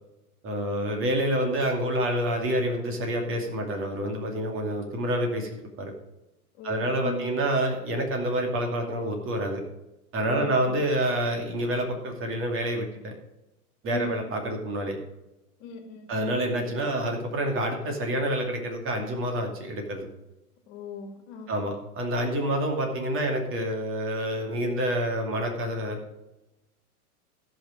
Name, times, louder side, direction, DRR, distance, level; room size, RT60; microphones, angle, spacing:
voice 1, 0.4-5.5 5.8-5.9 6.6-9.6 10.1-13.1 13.8-15.0 16.1-20.1 21.5-26.0, right 1 dB, 25° right, 2 dB, 2.5 m, -28 dB
voice 2, 6.6-7.2 10.3-10.8 13.9-14.2 15.6-16.1 20.7-21.5, left 3 dB, 45° left, 5 dB, 2.1 m, -39 dB
15.0 x 5.9 x 5.1 m, 0.95 s
hypercardioid pair, 110°, 46 cm